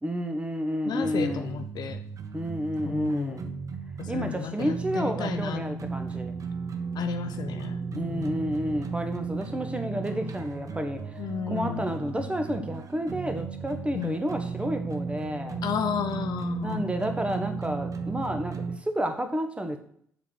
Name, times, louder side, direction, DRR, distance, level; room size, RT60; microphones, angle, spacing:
voice 1, 0.0-1.6 2.3-3.5 4.1-6.4 7.9-11.2 11.5-15.6 16.6-19.8, equal, 15° right, 7 dB, 1.4 m, -30 dB
voice 2, 0.9-2.0 2.8-3.4 4.0-5.6 6.9-8.5 11.2-11.9 13.9-14.2 15.6-16.9, left 8 dB, 50° left, 8 dB, 0.7 m, -33 dB
sound 1, 1.0-18.8, right 5 dB, 40° right, 1.0 m, -35 dB
7.3 x 5.1 x 6.4 m, 0.63 s
figure-of-eight pair, 45°, 9 cm